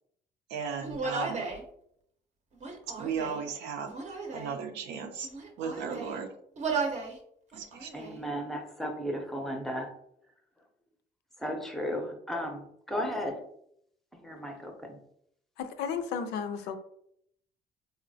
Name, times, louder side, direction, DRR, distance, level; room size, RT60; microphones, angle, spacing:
voice 1, 0.5-1.5 3.0-4.0 4.3-5.3 5.6-6.3 7.5-8.0, right 6 dB, 85° right, 0.5 m, -36 dB
Human voice, 0.8-1.6 2.5-3.5 3.9-4.6 5.2-6.2 6.6-7.2 7.5-8.2, right 4 dB, 45° right, 0.6 m, -35 dB
voice 2, 7.9-9.9 11.4-13.4 14.1-15.0, equal, ahead, 0.5 m, -35 dB
voice 3, 15.6-16.8, left 6 dB, 80° left, 0.4 m, -33 dB
3.7 x 2.0 x 2.7 m
cardioid pair, 110°, 17 cm